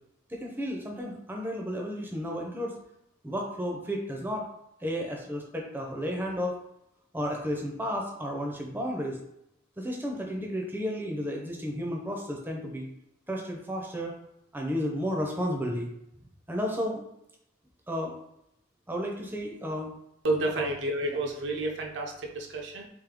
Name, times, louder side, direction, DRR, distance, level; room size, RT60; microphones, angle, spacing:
voice 1, 0.3-2.8 3.2-4.5 4.8-6.6 7.1-9.2 9.8-12.9 13.3-14.1 14.5-15.9 16.5-17.1 17.9-18.1 18.9-19.9 20.6-20.7, equal, 10° right, 0 dB, 0.6 m, -32 dB
voice 2, 20.2-22.9, right 2 dB, 60° right, 2 dB, 0.5 m, -30 dB
3.5 x 3.1 x 3.6 m, 0.79 s
head